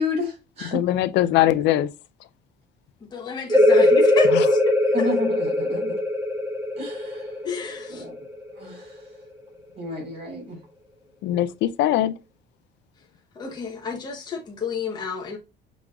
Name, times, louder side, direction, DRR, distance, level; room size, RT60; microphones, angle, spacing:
voice 1, 0.0-0.8 4.9-6.0 6.8-7.2 7.9-8.1 8.6-8.8 9.8-10.6, left 3 dB, 35° right, 2.8 m, -30 dB
voice 2, 0.7-1.9 4.3-4.4 11.2-12.1, left 13 dB, 80° left, 0.5 m, -21 dB
voice 3, 3.0-4.6 5.0-5.1 7.4-8.0 13.4-15.4, left 5 dB, 25° left, 0.9 m, -31 dB
sound 1, 3.5-8.9, left 1 dB, 15° right, 0.8 m, -21 dB
5.9 x 3.8 x 2.3 m
cardioid pair, 175°, 18 cm